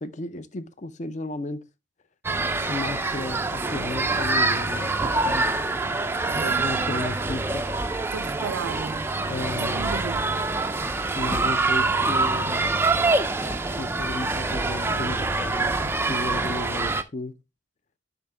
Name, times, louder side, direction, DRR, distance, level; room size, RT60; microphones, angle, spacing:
voice 1, 0.0-1.6 2.7-5.5 6.3-7.7 9.2-10.0 11.1-12.7 13.4-17.4, left 2 dB, 35° left, 0.5 m, -34 dB
sound 1, 2.2-17.0, right 3 dB, 10° right, 0.4 m, -25 dB
voice 2, 6.3-7.1 8.1-9.1 9.6-10.3, right 6 dB, 75° right, 0.4 m, -35 dB
7.8 x 5.6 x 3.3 m
head